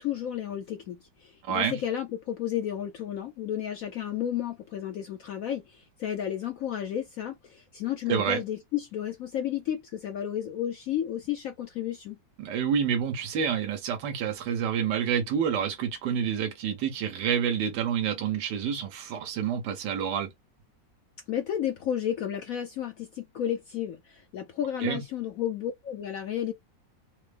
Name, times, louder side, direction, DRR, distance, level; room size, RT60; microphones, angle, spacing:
voice 1, 0.0-12.2 21.3-26.5, left 10 dB, 70° left, 0.8 m, -32 dB
voice 2, 1.4-1.8 8.1-8.4 12.4-20.3 24.8-25.0, right 8 dB, 75° right, 1.4 m, -28 dB
3.9 x 2.0 x 3.3 m
omnidirectional pair, 2.0 m